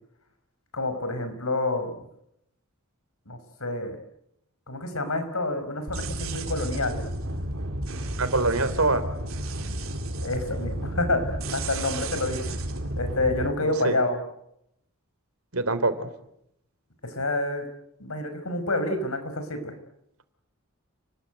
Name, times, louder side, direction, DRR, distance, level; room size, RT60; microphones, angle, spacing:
voice 1, 0.7-2.1 3.3-4.0 4.7-7.0 10.2-12.4 13.0-14.2 17.0-17.7 18.0-19.7, left 2 dB, 85° left, 9 dB, 5.5 m, -28 dB
sound 1, 5.9-13.5, right 1 dB, 70° right, 3.8 m, -32 dB
voice 2, 8.2-9.0 13.6-13.9 15.5-16.1, right 3 dB, 90° right, 11 dB, 3.3 m, -24 dB
30.0 x 20.5 x 9.3 m, 0.80 s
head